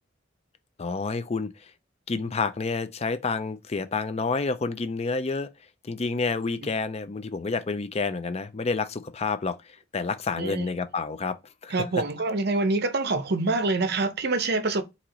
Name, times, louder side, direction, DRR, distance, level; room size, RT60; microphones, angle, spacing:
voice 1, 0.8-1.7 2.1-5.5 5.8-11.4 11.6-11.7, left 4 dB, 30° left, 0.5 m, -29 dB
voice 2, 11.7-14.8, right 3 dB, 55° right, 0.7 m, -26 dB
4.5 x 2.9 x 3.8 m
head